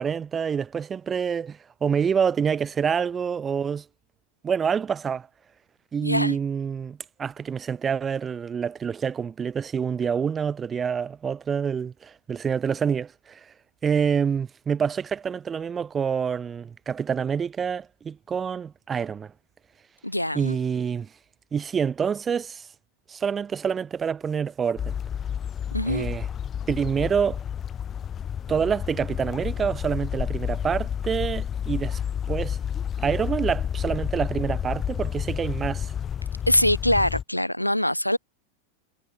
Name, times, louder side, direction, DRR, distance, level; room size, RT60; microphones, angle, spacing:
voice 1, 0.0-3.8 4.4-5.3 5.9-13.4 13.8-19.3 20.3-21.1 21.5-22.7 23.1-25.0 25.8-26.3 26.7-27.4 28.5-32.0 32.3-32.6 33.0-35.9, right 7 dB, 20° right, 1.4 m, -27 dB
voice 2, 6.0-6.4 20.0-20.6 25.7-26.1 36.5-38.2, left 1 dB, 90° left, 0.8 m, -23 dB
cargo ship on the river Elbe, 24.8-37.2, left 8 dB, 25° left, 0.3 m, -30 dB
figure-of-eight pair, 90°, 0 cm